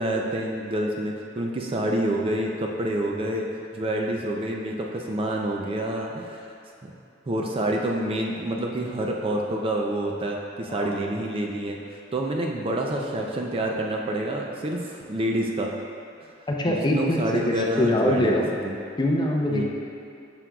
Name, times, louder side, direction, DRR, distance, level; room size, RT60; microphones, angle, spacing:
voice 1, 0.0-6.5 6.8-6.9 7.3-11.8 12.1-15.7 16.7-18.8 19.5-19.6, right 1 dB, 30° right, 0 dB, 0.4 m, -27 dB
voice 2, 10.7-11.0 16.5-18.5 19.0-19.6, left 1 dB, 25° left, -1 dB, 0.6 m, -24 dB
7.6 x 6.1 x 2.3 m, 2.6 s
head